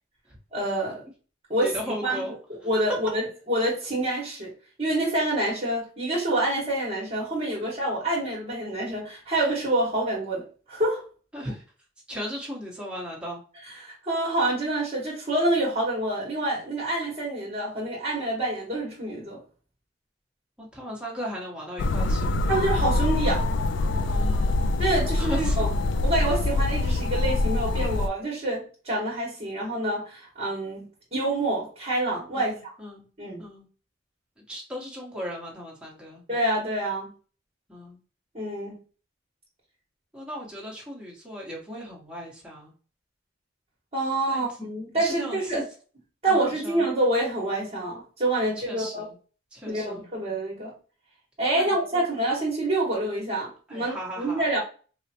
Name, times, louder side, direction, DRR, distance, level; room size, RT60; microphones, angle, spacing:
voice 1, 0.5-1.0 1.5-1.7 2.0-2.3 2.6-3.2 3.5-4.5 4.8-11.0 13.6-19.4 22.5-23.5 24.8-25.7 26.0-32.7 33.2-33.4 36.3-37.1 38.3-38.8 43.9-45.6 46.2-49.1 49.7-50.7 51.4-54.6, right 1 dB, 35° right, -6 dB, 1.2 m, -27 dB
voice 2, 1.6-2.3 11.3-11.6 12.1-13.4 20.6-22.4 24.0-24.8 25.2-25.7 32.3-33.1 33.4-33.6 34.5-36.2 37.7-38.0 40.1-42.7 44.3-44.5 44.9-45.6 46.3-46.8 48.4-49.2 49.5-50.1 51.5-52.1 53.7-54.4, equal, 5° right, -4 dB, 1.2 m, -37 dB
sound 1, 21.8-28.1, left 2 dB, 80° left, 0.3 m, -24 dB
4.8 x 2.1 x 2.8 m, 0.38 s
head